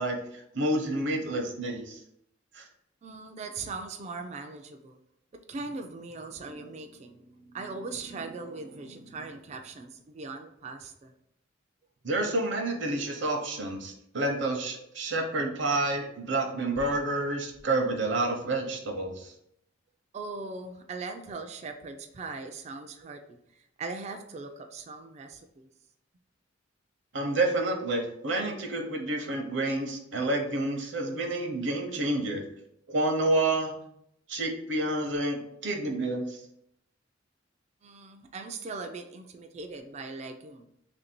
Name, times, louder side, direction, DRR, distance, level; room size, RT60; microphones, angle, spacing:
voice 1, 0.0-2.0 2.5-2.6 12.0-19.3 27.1-32.4 32.9-33.7 34.3-36.4, right 2 dB, 65° right, 3 dB, 0.7 m, -29 dB
voice 2, 3.0-5.0 5.5-11.1 20.1-25.7 37.8-40.7, right 3 dB, 35° right, 5 dB, 0.3 m, -40 dB
3.2 x 2.6 x 4.3 m, 0.75 s
head